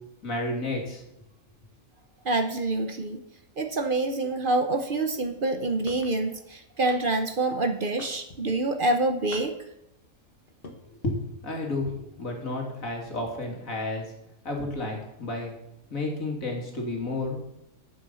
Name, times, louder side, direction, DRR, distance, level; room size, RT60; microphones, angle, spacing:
voice 1, 0.2-1.0 10.9-14.1 14.4-15.5 15.9-17.4, left 2 dB, 80° left, 0 dB, 3.1 m, -31 dB
voice 2, 2.2-3.2 3.6-9.5, right 2 dB, 45° right, 7 dB, 1.0 m, -26 dB
sound 1, 5.9-6.2 6.9-7.3 8.0-8.5 9.3-9.8 10.5-10.8, left 2 dB, 45° left, 1.4 m, -44 dB
9.2 x 8.9 x 7.0 m, 0.82 s
omnidirectional pair, 1.4 m